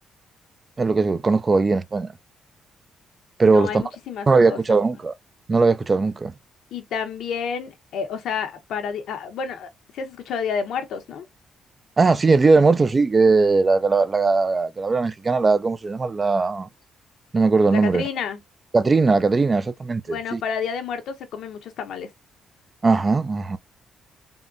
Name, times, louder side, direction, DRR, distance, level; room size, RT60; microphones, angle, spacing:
voice 1, 0.8-2.1 3.4-3.8 4.3-5.1 5.5-6.3 12.0-16.7 17.3-18.0 18.7-20.4 22.8-23.6, right 4 dB, 30° right, 0.3 m, -19 dB
voice 2, 3.4-4.6 6.7-11.3 17.7-18.4 20.1-22.1, left 6 dB, 75° left, 0.8 m, -30 dB
3.5 x 2.2 x 2.5 m
cardioid pair, 90°, 0 cm